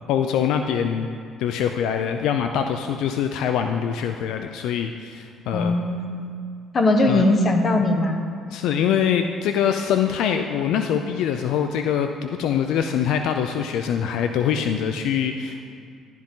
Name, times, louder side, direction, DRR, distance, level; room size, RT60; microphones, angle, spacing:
voice 1, 0.1-1.1 1.4-5.8 7.1-7.2 8.5-15.7, left 8 dB, 75° left, 6 dB, 0.5 m, -24 dB
voice 2, 5.5-6.3 6.7-8.2, left 2 dB, 35° left, 5 dB, 1.2 m, -20 dB
12.0 x 11.5 x 3.8 m, 2.3 s
cardioid pair, 105°, 0 cm